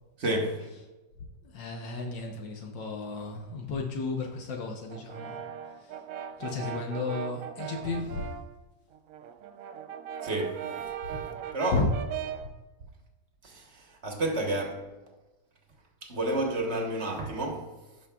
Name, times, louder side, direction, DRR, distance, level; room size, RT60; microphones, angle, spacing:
voice 1, 0.2-0.7 10.2-10.8 11.1-11.3 11.5-11.8 13.4-14.9 16.0-17.8, right 1 dB, 40° right, 1.3 m, -31 dB
voice 2, 1.4-5.4 5.8-6.0 6.4-8.3 11.7-11.9, left 3 dB, 80° left, 1.5 m, -33 dB
Brass instrument, 4.9-8.5 8.9-12.5, right 9 dB, 75° right, 0.7 m, -39 dB
16.5 x 5.6 x 2.3 m
omnidirectional pair, 1.9 m